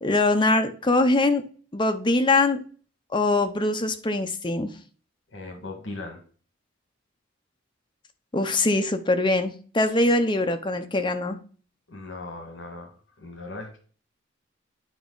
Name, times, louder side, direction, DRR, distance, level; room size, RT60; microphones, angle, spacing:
voice 1, 0.0-1.4 1.7-2.6 3.1-4.7 8.3-11.4, left 2 dB, 25° left, 7 dB, 0.7 m, -22 dB
voice 2, 5.3-6.2 10.0-10.2 11.9-13.8, left 2 dB, 65° left, 2 dB, 1.6 m, -39 dB
9.3 x 4.7 x 3.9 m, 0.41 s
head